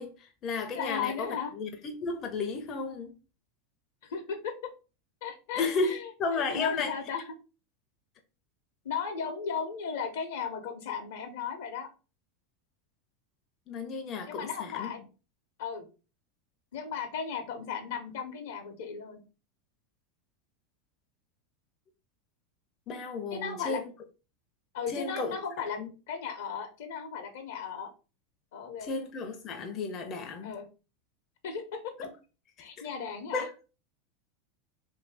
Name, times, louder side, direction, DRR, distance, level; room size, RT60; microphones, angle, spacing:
voice 1, 0.0-3.1 5.6-6.9 13.7-14.9 22.9-23.9 24.9-25.4 25.8-25.9 28.8-30.6 32.0-32.1 32.8-32.9 33.3-33.5, left 4 dB, 40° left, 0.5 m, -33 dB
voice 2, 0.7-1.5 4.0-4.7 5.2-6.1 6.5-7.2 8.8-11.9 14.3-15.0 15.6-15.8 16.7-19.2 23.3-23.8 24.7-25.8 26.1-27.9 28.5-28.9 30.4-30.6 31.4-32.1 32.6-33.4, left 6 dB, 75° left, 0.7 m, -36 dB
2.7 x 2.6 x 3.3 m
hypercardioid pair, 100°, 0 cm